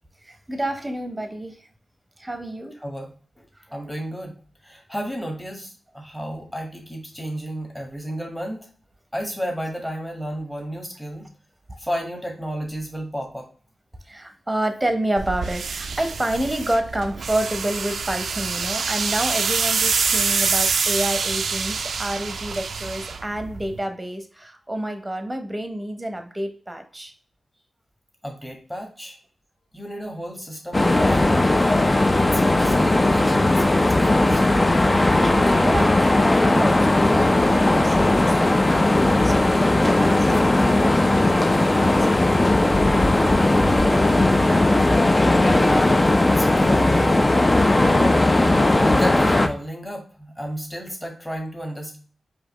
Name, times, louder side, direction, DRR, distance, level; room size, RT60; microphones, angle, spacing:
voice 1, 0.2-1.6 2.2-2.7 11.7-11.8 14.1-27.1 35.2-44.8 47.7-48.1, right 1 dB, 15° right, 6 dB, 0.8 m, -29 dB
voice 2, 3.7-4.3 4.6-8.7 9.1-11.3 11.8-13.5 28.2-29.2 29.7-34.4 45.3-47.2 47.7-48.3 48.8-52.0, equal, 10° left, 1 dB, 1.3 m, -32 dB
sound 1, 15.2-23.8, right 5 dB, 80° right, 0.4 m, -26 dB
sound 2, 30.7-49.5, left 2 dB, 25° left, 0.4 m, -18 dB
4.9 x 2.7 x 3.0 m, 0.43 s
wide cardioid pair, 80°, 0 cm